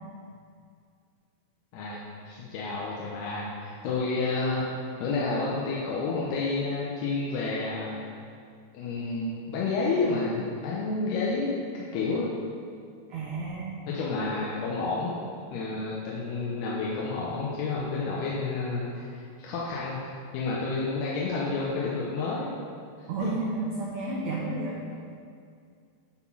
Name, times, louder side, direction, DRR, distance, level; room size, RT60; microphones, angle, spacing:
voice 1, 2.3-4.7 5.0-8.0 8.7-11.5 11.9-12.3 13.9-15.1 15.5-20.0 20.3-22.6 23.0-23.3, left 3 dB, 90° left, -5 dB, 2.9 m, -30 dB
voice 2, 13.1-13.8 23.1-24.8, right 3 dB, 75° right, -5 dB, 1.7 m, -31 dB
9.8 x 4.0 x 6.1 m, 2.3 s
omnidirectional pair, 4.6 m